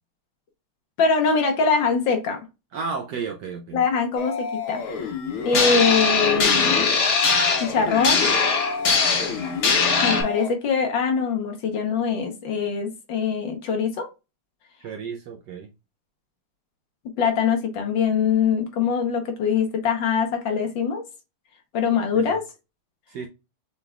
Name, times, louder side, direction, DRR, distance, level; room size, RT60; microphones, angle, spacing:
voice 1, 1.0-2.4 3.7-5.2 5.4-6.9 7.6-8.3 10.0-14.1 17.2-21.0 21.7-22.4, left 5 dB, 65° left, 1.6 m, -23 dB
voice 2, 2.7-3.8 14.8-15.7 22.1-22.4 23.1-23.3, right 5 dB, 70° right, 1.1 m, -32 dB
sound 1, 4.2-10.5, left 5 dB, 85° left, 1.9 m, -31 dB
sound 2, 5.5-10.2, left 4 dB, 45° left, 1.1 m, -21 dB
6.7 x 3.3 x 2.3 m
omnidirectional pair, 2.4 m